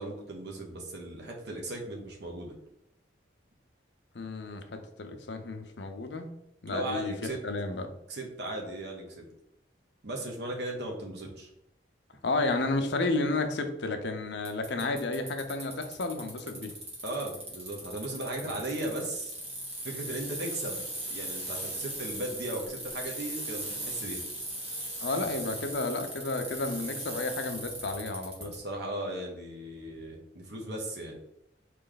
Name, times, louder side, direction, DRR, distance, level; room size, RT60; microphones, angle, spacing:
voice 1, 0.0-2.5 6.7-7.4 8.1-9.3 10.0-11.5 17.0-19.3 19.8-24.2 28.4-31.2, right 1 dB, 65° right, 0 dB, 0.9 m, -37 dB
voice 2, 4.1-6.3 6.6-7.9 12.2-16.7 25.0-28.5, left 2 dB, 70° left, 6 dB, 0.6 m, -32 dB
Bicycle, 14.4-28.6, right 1 dB, 35° right, 1.4 m, -39 dB
4.1 x 3.3 x 3.9 m, 0.79 s
head